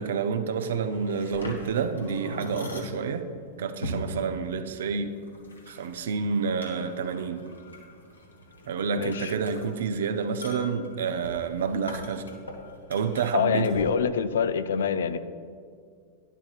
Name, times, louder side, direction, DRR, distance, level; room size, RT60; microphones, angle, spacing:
voice 1, 0.0-3.3 3.6-5.1 5.7-7.5 8.7-12.2 12.9-13.7, right 5 dB, 65° right, 8 dB, 0.6 m, -29 dB
sound 1, 0.7-13.8, left 1 dB, 90° left, 1.2 m, -42 dB
voice 2, 9.0-9.3 13.3-15.2, left 7 dB, 70° left, 12 dB, 0.4 m, -25 dB
11.0 x 10.5 x 2.4 m, 2.1 s
figure-of-eight pair, 95°, 0 cm